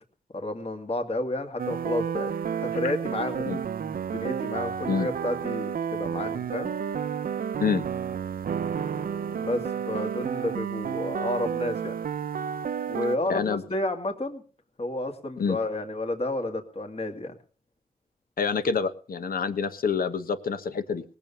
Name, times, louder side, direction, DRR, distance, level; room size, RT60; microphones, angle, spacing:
voice 1, 0.3-2.3 2.6-3.5 4.1-6.7 9.3-11.9 12.9-14.4 14.8-17.4, left 1 dB, 40° left, 4 dB, 2.3 m, -31 dB
sound 1, 1.6-13.2, right 7 dB, 65° right, 0.8 m, -31 dB
voice 2, 13.3-13.6 15.4-15.6 18.4-21.0, left 5 dB, 65° left, 10 dB, 1.2 m, -27 dB
19.0 x 7.2 x 6.9 m, 0.40 s
cardioid pair, 65°, 16 cm